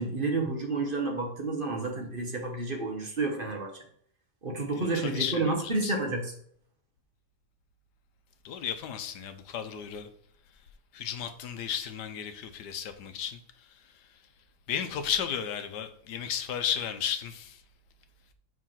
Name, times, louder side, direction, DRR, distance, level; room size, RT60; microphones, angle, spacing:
voice 1, 0.0-3.7 4.4-6.3, right 3 dB, 35° right, 1.2 m, -30 dB
voice 2, 4.7-5.9 8.4-10.1 10.9-14.1 14.7-17.6, left 8 dB, 75° left, 1.4 m, -34 dB
5.4 x 5.1 x 5.7 m
omnidirectional pair, 1.8 m